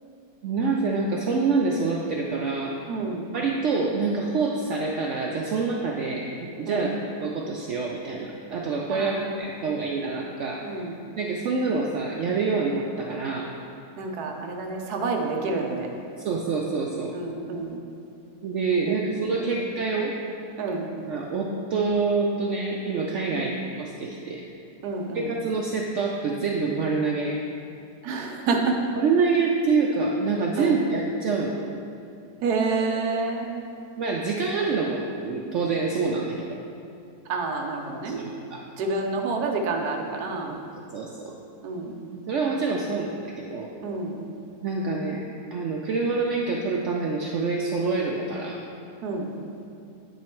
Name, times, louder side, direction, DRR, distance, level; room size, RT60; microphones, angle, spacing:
voice 1, 0.4-2.7 3.3-6.9 7.2-10.6 11.2-13.5 16.2-17.1 18.4-20.1 21.1-23.5 23.8-24.4 25.1-27.4 29.0-31.5 34.0-36.6 38.0-38.6 40.9-41.3 42.1-43.7 44.6-45.2 45.5-48.6, right 4 dB, 90° right, -1 dB, 0.6 m, -26 dB
voice 2, 2.9-3.3 6.7-6.9 8.9-9.8 10.6-11.0 14.0-15.9 17.1-17.8 18.8-19.6 20.6-20.9 23.3-23.5 24.8-25.3 28.0-28.8 30.6-30.8 32.4-33.5 37.3-38.2 38.8-40.5 41.6-42.0 43.8-44.2 49.0-49.3, right 3 dB, 70° right, 2 dB, 1.2 m, -29 dB
9.2 x 3.1 x 4.4 m, 2.5 s
omnidirectional pair, 1.8 m